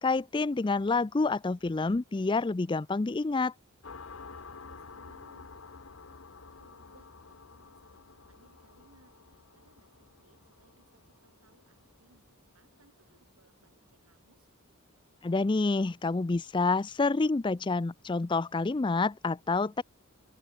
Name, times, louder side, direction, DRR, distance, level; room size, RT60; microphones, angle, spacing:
voice 1, 0.0-3.5 15.2-19.8, left 3 dB, 20° left, 0.4 m, -28 dB
sound 1, 3.8-13.1, left 4 dB, 65° left, 1.1 m, -51 dB
voice 2, 4.5-12.3 12.5-14.5, right 2 dB, 85° right, 6.6 m, -66 dB
open air
head